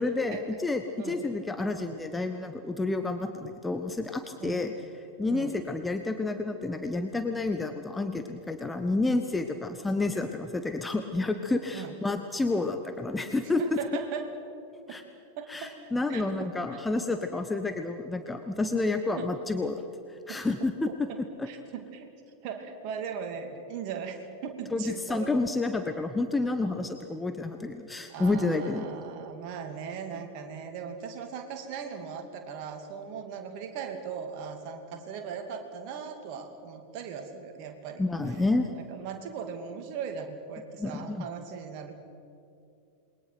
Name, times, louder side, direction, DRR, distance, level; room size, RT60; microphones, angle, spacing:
voice 1, 0.0-4.7 5.2-13.6 14.9-15.0 15.5-19.8 20.3-20.9 24.7-28.9 38.0-38.7 40.8-41.2, left 3 dB, 10° left, 7 dB, 1.1 m, -29 dB
voice 2, 13.6-14.3 14.9-15.0 15.4-15.8 16.1-16.8 19.2-19.3 20.3-20.4 21.1-22.1 22.4-25.3 28.1-38.0 38.3-38.4 38.7-41.9, right 6 dB, 45° right, 5 dB, 2.5 m, -38 dB
28.0 x 21.5 x 6.0 m, 2.7 s
figure-of-eight pair, 90°, 0 cm